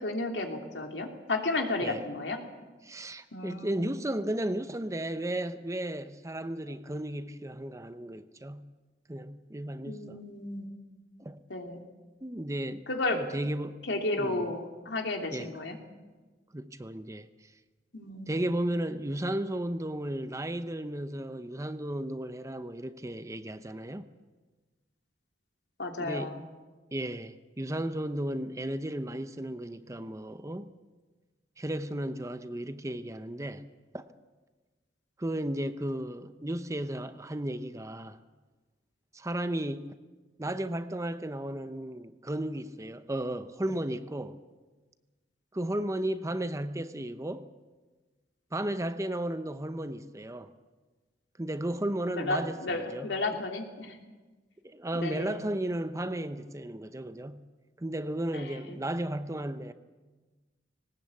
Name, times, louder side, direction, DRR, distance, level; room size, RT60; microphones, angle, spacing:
voice 1, 0.0-2.4 3.3-3.9 9.9-10.7 11.5-11.8 12.9-13.2 13.9-15.8 17.9-18.6 25.8-26.4 52.1-54.0 54.9-55.4 58.3-58.8, left 2 dB, 75° left, 3.0 m, -33 dB
voice 2, 2.8-8.7 9.1-10.2 11.2-11.4 12.2-12.8 13.1-13.8 14.2-14.5 15.3-15.5 16.5-17.3 18.3-24.1 26.0-26.4 26.9-30.7 31.6-33.6 33.9-34.0 35.2-38.2 39.1-39.9 40.4-44.4 45.5-47.5 48.5-50.5 51.4-53.1 54.6-57.4 57.8-59.7, right 1 dB, 15° right, 0.8 m, -34 dB
19.5 x 19.0 x 8.4 m
head